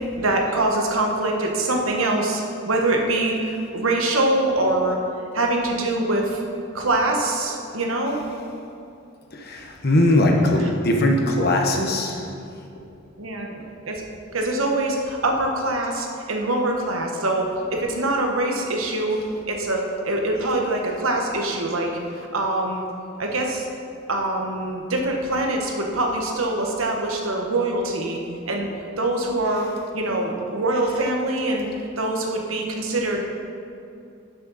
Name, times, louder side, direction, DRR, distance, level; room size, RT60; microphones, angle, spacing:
voice 1, 0.1-5.0 5.3-6.4 6.7-8.2 10.6-10.7 13.2-14.0 14.3-19.2 19.5-22.8 23.2-23.7 24.1-28.2 28.4-28.7 29.0-29.7 29.9-31.7 32.0-33.2, right 2 dB, 85° right, 1 dB, 1.2 m, -24 dB
voice 2, 9.4-12.2, left 1 dB, 50° left, 1 dB, 1.1 m, -20 dB
11.5 x 6.5 x 4.1 m, 2.6 s
head